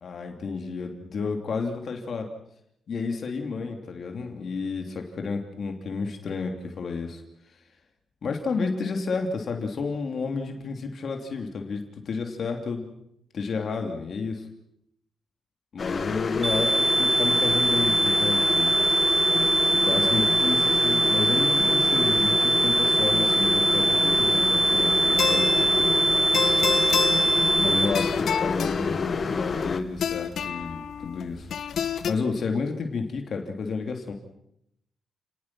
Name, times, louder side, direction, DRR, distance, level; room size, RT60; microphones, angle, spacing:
voice 1, 0.0-2.3 2.9-7.2 8.2-12.9 13.3-14.5 15.7-18.7 19.7-25.9 27.6-31.5 32.1-34.1, left 4 dB, 55° left, 4 dB, 2.7 m, -31 dB
sound 1, 15.8-29.8, left 4 dB, 35° left, 1.5 m, -29 dB
sound 2, 16.4-27.9, right 2 dB, 25° right, 3.3 m, -22 dB
sound 3, 23.9-32.1, left 8 dB, 70° left, 1.3 m, -31 dB
30.0 x 19.5 x 6.0 m, 0.77 s
wide cardioid pair, 140°, 0 cm